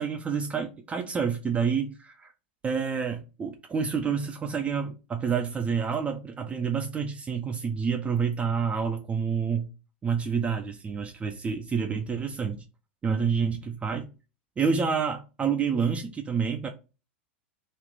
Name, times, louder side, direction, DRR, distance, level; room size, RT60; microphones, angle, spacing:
voice 1, 0.0-2.3 2.6-9.7 10.0-12.6 13.0-14.1 14.6-16.7, right 6 dB, 20° right, 0.5 m, -28 dB
3.2 x 2.4 x 3.6 m
hypercardioid pair, 100°, 6 cm